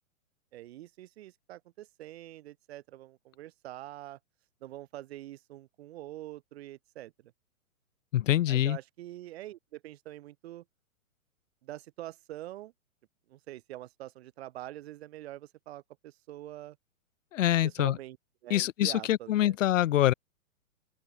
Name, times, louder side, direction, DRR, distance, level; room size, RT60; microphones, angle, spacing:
voice 1, 0.5-4.2 4.6-7.1 8.5-10.6 11.6-12.7 13.3-16.8 17.6-18.2 18.4-19.5, right 14 dB, 45° right, 1.6 m, -45 dB
voice 2, 8.1-8.8 17.3-18.0 18.5-20.1, left 13 dB, 60° left, 0.6 m, -25 dB
open air
hypercardioid pair, 145°, 43 cm